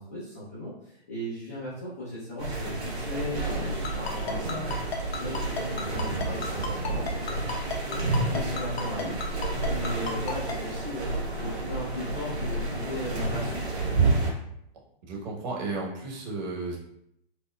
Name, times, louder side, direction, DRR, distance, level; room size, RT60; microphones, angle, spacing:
voice 1, 0.0-9.1 9.7-11.1 11.4-13.8, left 1 dB, 15° left, -10 dB, 0.3 m, -37 dB
sound 1, 2.4-14.3, right 2 dB, 90° right, 1.1 m, -30 dB
Ringtone, 3.8-10.5, left 6 dB, 70° left, 0.8 m, -33 dB
voice 2, 15.1-16.8, right 3 dB, 45° right, -2 dB, 1.0 m, -33 dB
4.3 x 2.0 x 2.2 m, 0.76 s
hypercardioid pair, 145°, 32 cm